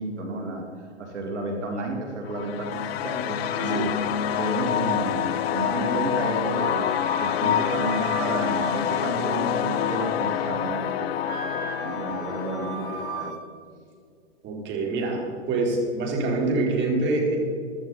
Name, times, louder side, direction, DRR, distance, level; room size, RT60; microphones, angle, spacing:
voice 1, 0.0-4.0 4.3-6.9 7.2-13.3, right 2 dB, 80° right, 1 dB, 2.4 m, -31 dB
sound 1, 2.3-13.3, left 10 dB, 60° left, 0.7 m, -27 dB
Wind instrument woodwind instrument, 6.6-9.6 10.0-10.7 11.2-13.4, right 5 dB, 65° right, 2.7 m, -37 dB
voice 2, 14.4-15.2 15.5-17.4, right 2 dB, 30° right, -1 dB, 3.7 m, -25 dB
15.5 x 12.0 x 4.1 m, 2.2 s
hypercardioid pair, 110°, 35 cm